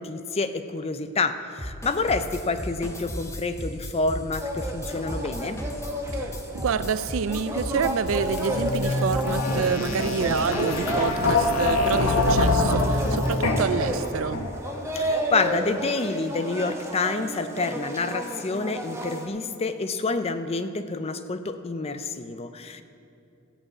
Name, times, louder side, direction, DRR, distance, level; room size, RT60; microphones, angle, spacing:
voice 1, 0.0-5.6 14.9-22.8, left 3 dB, 30° left, 10 dB, 0.5 m, -28 dB
sound 1, 1.6-9.6, equal, 15° left, 0.9 m, -36 dB
sound 2, 4.4-19.3, right 1 dB, 15° right, 1.0 m, -31 dB
voice 2, 6.5-14.4, right 6 dB, 70° right, 14 dB, 0.4 m, -28 dB
sound 3, 8.1-14.8, left 2 dB, 90° left, 1.2 m, -25 dB
14.5 x 5.4 x 8.2 m, 2.6 s
head